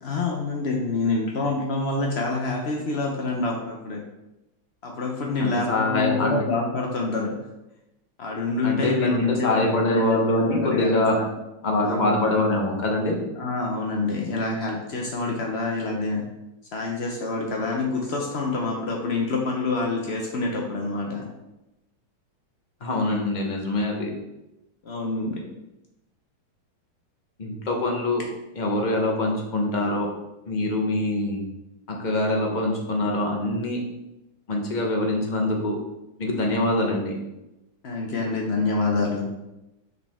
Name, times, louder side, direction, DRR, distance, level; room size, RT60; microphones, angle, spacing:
voice 1, 0.0-4.0 4.8-7.4 8.2-11.3 11.8-12.3 13.4-16.2 16.7-21.3 24.8-25.4 37.8-39.2, left 3 dB, 80° left, 0 dB, 0.5 m, -27 dB
voice 2, 5.4-6.4 8.6-11.2 11.6-13.2 22.8-24.1 27.4-28.2 28.5-30.1 30.5-31.4 31.9-33.8 34.5-35.8 36.2-37.2, left 2 dB, 35° left, 0 dB, 0.7 m, -24 dB
6.6 x 5.1 x 3.5 m, 0.94 s
omnidirectional pair, 2.2 m